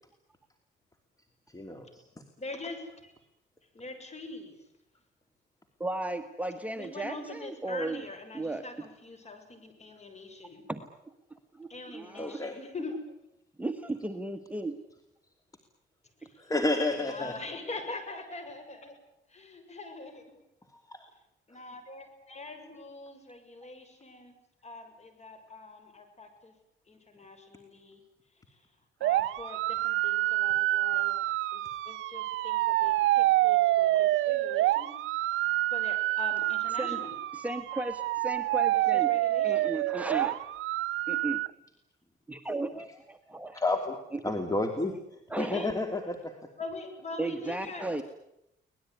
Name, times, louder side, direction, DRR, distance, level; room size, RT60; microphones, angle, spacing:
voice 1, 1.5-2.0 12.2-12.6 16.4-17.4 20.7-21.1 43.5-44.0 44.2-45.0 45.4-46.3, left 2 dB, 15° left, 6 dB, 2.8 m, -30 dB
voice 2, 2.4-3.1 3.7-4.5 6.8-10.6 11.7-13.0 16.2-16.4 17.0-18.9 19.3-20.4 21.5-24.3 24.6-26.5 26.9-28.0 28.5-28.6 29.0-31.2 31.5-34.9 35.2-35.4 35.7-37.1 38.7-39.7 45.4-45.7 46.6-47.8, left 3 dB, 35° left, 8 dB, 6.7 m, -43 dB
voice 3, 5.8-8.0 8.3-8.9 10.7-11.1 11.5-12.4 13.6-14.8 33.0-33.2 36.8-37.0 37.3-39.1 39.4-40.4 41.1-41.4 42.3-43.6 44.1-44.2 45.3-45.7 47.2-48.0, right 2 dB, 5° right, 7 dB, 1.5 m, -35 dB
sound 1, 29.0-41.5, right 16 dB, 85° right, 0.9 m, -27 dB
24.5 x 19.5 x 9.7 m, 0.83 s
cardioid pair, 90°, 20 cm